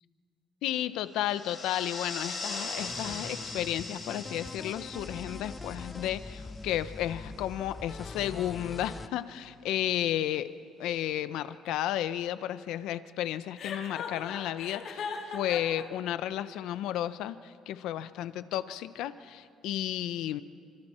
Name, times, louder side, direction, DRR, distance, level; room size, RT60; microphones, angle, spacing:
voice 1, 0.6-10.5 10.8-20.4, left 12 dB, 80° left, 13 dB, 0.7 m, -33 dB
sound 1, 1.1-6.9, left 3 dB, 35° left, 6.5 m, -40 dB
sound 2, 2.8-9.1, left 3 dB, 15° left, 0.5 m, -43 dB
Chuckle chortle, 13.6-15.8, left 6 dB, 55° left, 3.1 m, -38 dB
28.5 x 25.5 x 4.4 m, 2.3 s
cardioid pair, 150°, 0 cm